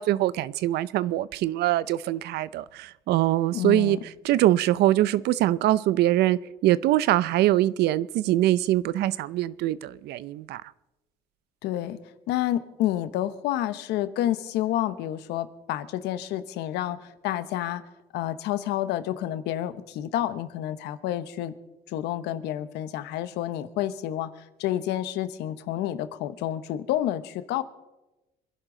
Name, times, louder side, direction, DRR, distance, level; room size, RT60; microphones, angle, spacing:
voice 1, 0.0-4.0 4.2-10.6, right 14 dB, 75° right, 0.6 m, -23 dB
voice 2, 3.5-4.0 11.6-12.0 12.3-17.8 18.1-21.5 21.9-24.3 24.6-27.6, left 12 dB, 85° left, 1.1 m, -29 dB
26.5 x 11.0 x 3.9 m
cardioid pair, 110°, 17 cm